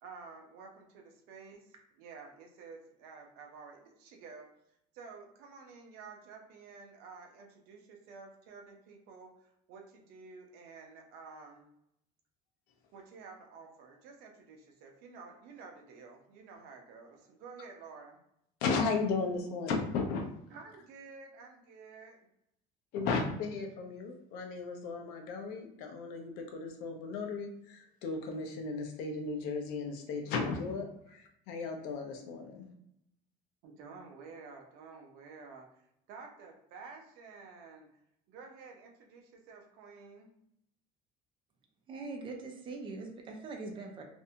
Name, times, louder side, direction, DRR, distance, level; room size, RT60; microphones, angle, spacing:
voice 1, 0.0-4.5 4.9-11.7 12.9-18.2 20.5-22.2 31.1-31.2 33.6-37.9 38.3-40.3, right 4 dB, 70° right, 1 dB, 0.6 m, -51 dB
voice 2, 18.6-20.2 22.9-32.7, left 4 dB, 75° left, 3 dB, 0.6 m, -35 dB
voice 3, 41.9-44.0, right 3 dB, 30° right, 2 dB, 0.5 m, -42 dB
2.6 x 2.1 x 2.7 m, 0.77 s
cardioid pair, 155°, 17 cm